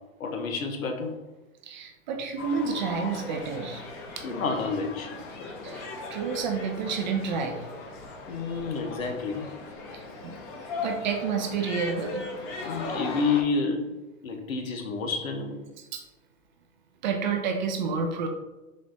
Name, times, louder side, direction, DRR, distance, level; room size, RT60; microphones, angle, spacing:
voice 1, 0.2-1.2 2.6-2.7 4.2-5.1 8.3-9.5 12.6-13.9 14.2-15.6, left 4 dB, 75° left, 4 dB, 0.8 m, -29 dB
voice 2, 1.6-3.8 4.2-4.3 5.6-7.6 9.9-10.4 10.8-12.2 15.8-16.0 17.0-18.3, right 5 dB, 35° right, 4 dB, 0.4 m, -30 dB
sound 1, 2.4-13.4, left 3 dB, 35° left, 0.7 m, -38 dB
4.0 x 2.4 x 3.3 m, 1.1 s
hypercardioid pair, 110°, 41 cm